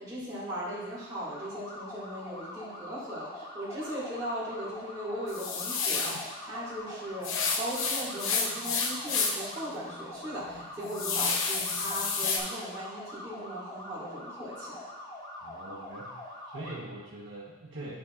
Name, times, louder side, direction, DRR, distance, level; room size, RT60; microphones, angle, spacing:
voice 1, 0.0-14.9, equal, 15° right, -11 dB, 2.1 m, -38 dB
sound 1, 1.1-16.7, left 1 dB, 20° left, 0.9 m, -44 dB
sound 2, 5.3-6.2 7.2-9.5 9.9-10.0 10.5-12.4, left 5 dB, 80° left, 0.8 m, -30 dB
voice 2, 15.4-16.2 16.5-17.9, right 2 dB, 65° right, -8 dB, 1.1 m, -42 dB
10.5 x 4.5 x 2.4 m, 1.1 s
head